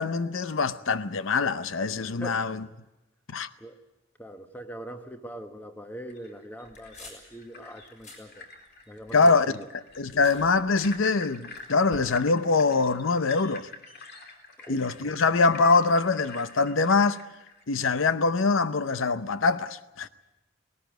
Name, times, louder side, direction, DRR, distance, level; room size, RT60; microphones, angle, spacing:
voice 1, 0.0-2.6 3.3-3.5 9.1-9.5 10.0-13.7 14.7-17.2 17.7-20.1, left 4 dB, 80° left, 0.7 m, -24 dB
voice 2, 1.9-2.4 3.6-3.8 4.2-8.5 8.9-9.7 14.6-15.1 20.0-20.1, equal, 10° left, 1.2 m, -42 dB
sound 1, 6.1-17.6, left 3 dB, 55° left, 2.8 m, -47 dB
sound 2, 6.6-7.3 7.8-8.3 8.6-11.1 11.5-12.1, left 1 dB, 35° left, 6.5 m, -50 dB
19.5 x 18.5 x 9.1 m
head